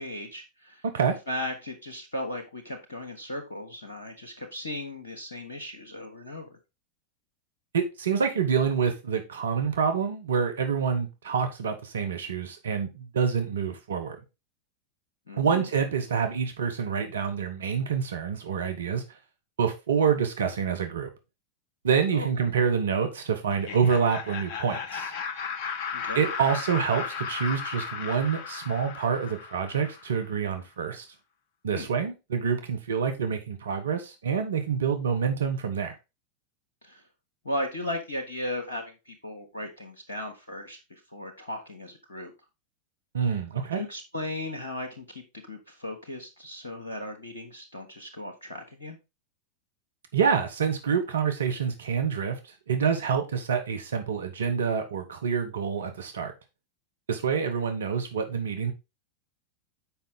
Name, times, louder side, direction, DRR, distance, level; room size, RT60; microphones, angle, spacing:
voice 1, 0.0-0.8 1.3-6.6 15.3-15.6 22.1-22.3 25.9-26.2 31.7-31.9 36.8-37.0 37.4-42.3 43.3-43.4 43.7-49.0, left 1 dB, 75° left, 1.3 m, -36 dB
voice 2, 0.8-1.2 7.7-14.2 15.3-19.0 19.6-21.1 21.8-25.1 26.1-31.0 31.6-35.9 43.1-43.8 50.1-56.3 57.1-58.7, right 6 dB, 65° right, 1.0 m, -27 dB
Laughter, 23.5-30.3, left 6 dB, 45° left, 1.0 m, -35 dB
7.1 x 5.2 x 3.6 m
figure-of-eight pair, 90°, 0 cm